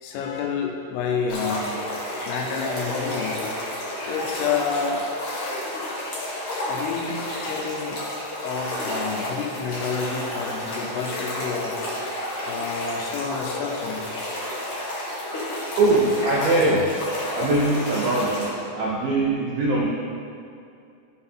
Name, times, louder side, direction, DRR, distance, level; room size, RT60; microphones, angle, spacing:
voice 1, 0.0-1.8 2.3-3.5 4.1-5.1 6.7-8.0 8.4-11.8 12.5-14.1, left 5 dB, 80° left, 1 dB, 3.4 m, -29 dB
sound 1, 1.3-18.5, left 1 dB, 60° left, 2.0 m, -31 dB
voice 2, 15.8-17.0 17.4-19.9, right 2 dB, 85° right, -5 dB, 2.1 m, -22 dB
12.5 x 4.4 x 4.4 m, 2.5 s
omnidirectional pair, 5.9 m